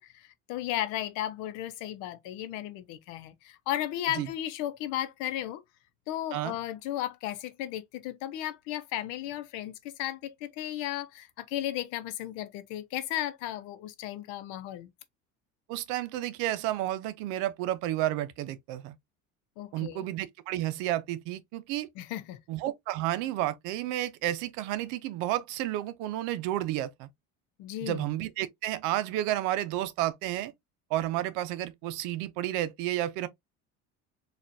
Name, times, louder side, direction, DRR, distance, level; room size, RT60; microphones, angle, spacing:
voice 1, 0.0-5.6 6.1-14.9 19.6-20.1 22.0-22.4 27.6-28.1, left 13 dB, 80° left, 0.7 m, -35 dB
voice 2, 15.7-18.9 19.7-21.9 22.5-27.1 27.8-30.5 30.9-33.3, right 14 dB, 80° right, 0.6 m, -31 dB
4.2 x 2.5 x 2.5 m
cardioid pair, 165°, 30 cm